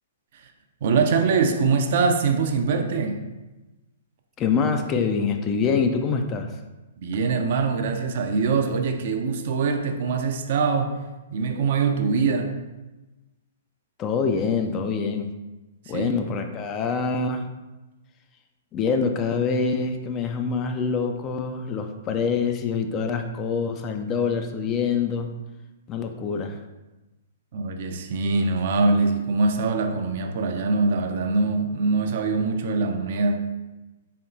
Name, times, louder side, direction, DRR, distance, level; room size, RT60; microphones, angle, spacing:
voice 1, 0.8-3.3 7.0-11.0 11.3-12.5 15.9-16.2 27.5-33.5, right 4 dB, 50° right, 5 dB, 0.4 m, -23 dB
voice 2, 4.4-6.5 14.0-15.3 15.9-17.5 18.7-25.3 25.9-26.6, left 5 dB, 25° left, 5 dB, 0.3 m, -25 dB
4.2 x 3.4 x 2.6 m, 1.1 s
figure-of-eight pair, 115°, 0 cm